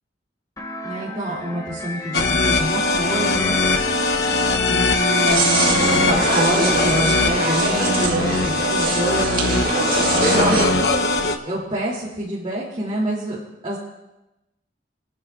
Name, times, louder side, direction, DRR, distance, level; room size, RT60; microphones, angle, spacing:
sound 1, 0.6-7.2, left 1 dB, 20° left, 1.1 m, -33 dB
voice 1, 0.8-3.6 4.6-9.7 10.1-11.0 11.4-13.8, right 1 dB, 30° right, -7 dB, 2.6 m, -27 dB
sound 2, 2.1-11.4, left 3 dB, 65° left, 0.9 m, -21 dB
sound 3, 5.2-10.7, right 2 dB, 50° right, 2.0 m, -23 dB
24.5 x 11.0 x 2.4 m, 0.98 s
head